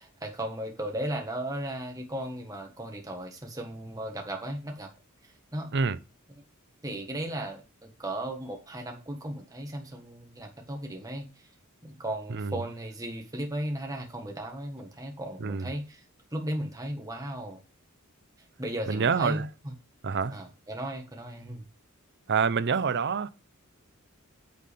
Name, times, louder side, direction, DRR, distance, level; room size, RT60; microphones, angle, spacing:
voice 1, 0.0-4.9 5.5-5.7 6.8-11.3 11.8-16.0 16.3-17.6 18.6-19.7 20.3-21.6, right 1 dB, 15° right, 1.4 m, -36 dB
voice 2, 18.9-19.5 20.0-20.4 22.3-23.3, right 5 dB, 55° right, 0.6 m, -27 dB
9.3 x 7.7 x 3.4 m
head